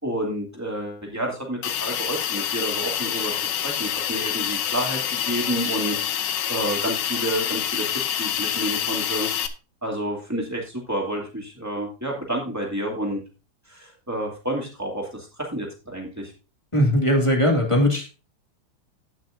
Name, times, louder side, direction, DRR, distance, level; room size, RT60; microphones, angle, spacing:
voice 1, 0.0-6.0 6.5-9.3 9.8-13.2 13.7-16.3, right 1 dB, 10° right, -2 dB, 2.7 m, -29 dB
Hiss, 1.6-9.5, left 9 dB, 65° left, 1.3 m, -27 dB
voice 2, 16.7-18.1, equal, 15° left, 0 dB, 2.0 m, -19 dB
17.0 x 6.0 x 2.6 m, 0.32 s
omnidirectional pair, 2.3 m